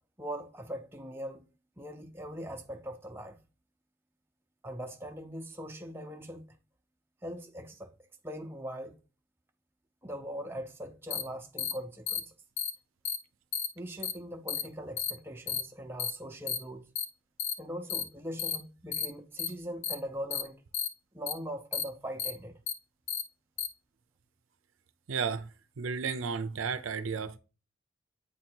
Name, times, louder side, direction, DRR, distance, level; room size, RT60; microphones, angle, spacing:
voice 1, 0.2-1.5 1.8-3.4 4.6-6.4 7.2-7.9 8.2-9.0 10.0-12.3 13.8-16.9 17.6-20.6 21.1-22.6, equal, 10° right, 0.5 m, -41 dB
sound 1, 11.1-11.2 11.6-11.7 12.1-12.2 12.6-12.7 13.1-13.2 13.5-13.7 14.0-14.1 14.5-14.6 15.0-15.1 15.5-15.6 16.0-16.1 16.5-16.6 17.0-17.1 17.4-17.5 17.9-18.0 18.4-18.6 18.9-19.1 19.4-19.5 19.8-20.0 20.3-20.4 20.7-20.9 21.3-21.4 21.7-21.8 22.2-22.3 22.7-22.8 23.1-23.2 23.6-23.7, left 8 dB, 70° left, 0.7 m, -32 dB
voice 2, 25.1-25.5 25.8-27.4, right 5 dB, 80° right, 0.5 m, -33 dB
8.3 x 2.8 x 4.4 m
head